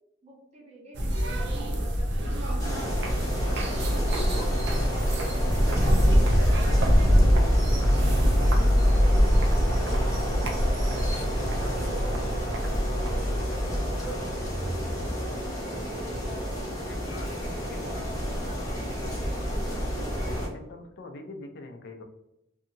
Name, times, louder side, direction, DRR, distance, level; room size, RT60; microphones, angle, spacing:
voice 1, 0.2-2.9 3.4-6.1 6.5-10.6 11.7-14.2 15.3-16.7 17.0-19.2, right 1 dB, 35° right, -3 dB, 0.8 m, -45 dB
sound 1, 0.9-15.3, equal, 65° right, 0.5 m, -24 dB
sound 2, 2.6-20.5, equal, 15° left, 0.8 m, -32 dB
voice 2, 3.4-4.0 11.4-11.9 14.0-14.3 16.0-16.1 16.9-18.0 18.3-18.8 20.0-22.0, left 2 dB, 60° left, 5 dB, 0.4 m, -45 dB
sound 3, 14.1-16.0, equal, 5° right, 0.5 m, -38 dB
2.7 x 2.7 x 2.4 m, 0.86 s
head